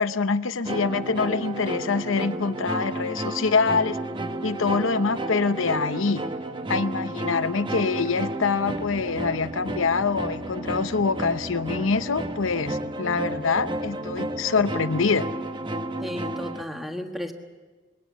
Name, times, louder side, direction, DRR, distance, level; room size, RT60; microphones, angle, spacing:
voice 1, 0.0-4.0 4.4-6.2 6.7-15.3, left 4 dB, 80° left, 12 dB, 0.8 m, -25 dB
sound 1, 0.7-16.6, right 1 dB, 25° right, 0.9 m, -32 dB
voice 2, 16.0-17.3, left 1 dB, ahead, 4 dB, 1.4 m, -33 dB
22.0 x 17.0 x 8.3 m, 1.3 s
head